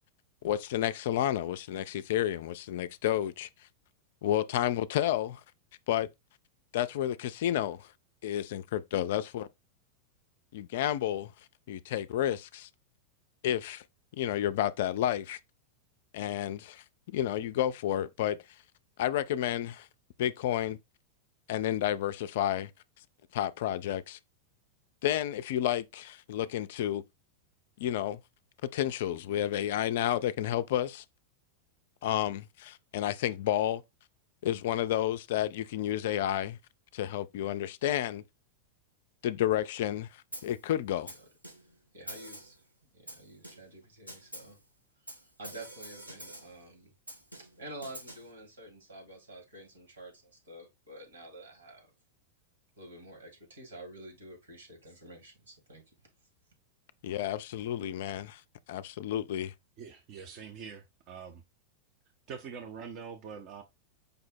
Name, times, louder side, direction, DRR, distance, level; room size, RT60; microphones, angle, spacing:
voice 1, 0.4-3.5 4.2-5.4 5.9-6.1 6.7-7.9 8.2-9.5 10.5-11.3 11.7-12.7 13.4-13.8 14.2-15.4 16.1-18.4 19.0-19.9 20.2-20.8 21.5-22.7 23.3-24.2 25.0-27.0 27.8-28.2 28.7-31.0 32.0-33.8 34.4-36.6 36.9-38.2 39.2-40.1 40.4-41.1 57.0-58.4 58.7-59.5, left 11 dB, 55° left, 0.3 m, -31 dB
Snare drum, 40.3-40.6 41.1-41.8 42.1-42.6 43.1-43.8 44.1-44.6 45.1-46.6 47.1-48.3, right 1 dB, 90° right, 2.6 m, -46 dB
voice 2, 41.9-42.6 42.9-44.6 45.2-46.9 47.4-51.9 52.8-55.8, right 1 dB, 70° right, 2.0 m, -49 dB
voice 3, 59.8-61.4 62.3-63.6, right 6 dB, 40° right, 0.6 m, -44 dB
5.1 x 2.0 x 4.4 m
figure-of-eight pair, 90°, 0 cm